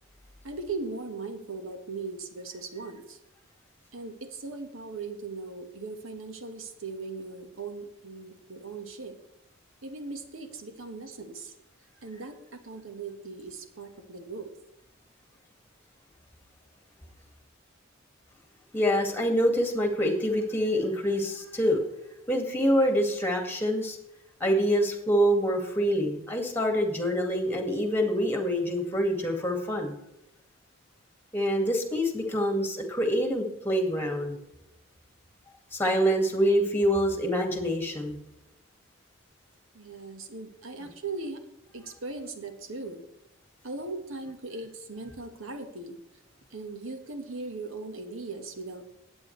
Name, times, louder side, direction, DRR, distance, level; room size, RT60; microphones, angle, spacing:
voice 1, 0.4-3.2 3.9-9.2 9.8-11.5 12.0-14.5 39.7-41.4 41.7-43.0 43.6-46.0 46.5-49.0, right 3 dB, 75° right, 6 dB, 1.5 m, -39 dB
voice 2, 18.7-21.8 22.3-24.0 24.4-29.9 31.3-34.4 35.7-38.2 40.8-40.9, equal, 10° left, 3 dB, 2.1 m, -26 dB
21.0 x 8.8 x 3.3 m, 0.87 s
head